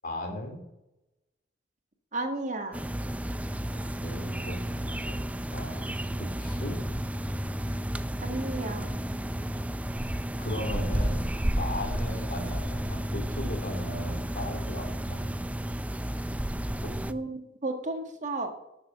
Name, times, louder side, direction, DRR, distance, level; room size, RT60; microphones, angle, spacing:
voice 1, 0.0-0.6 3.7-5.2 5.5-5.8 6.1-6.8 10.4-11.3 11.5-15.2 16.8-17.2, left 1 dB, 50° left, 3 dB, 3.1 m, -37 dB
voice 2, 2.1-2.8 8.2-8.9 17.1-18.5, right 2 dB, 45° right, 5 dB, 1.5 m, -33 dB
sound 1, 2.7-17.1, equal, 10° right, 0.4 m, -32 dB
12.5 x 6.9 x 6.7 m, 0.92 s
head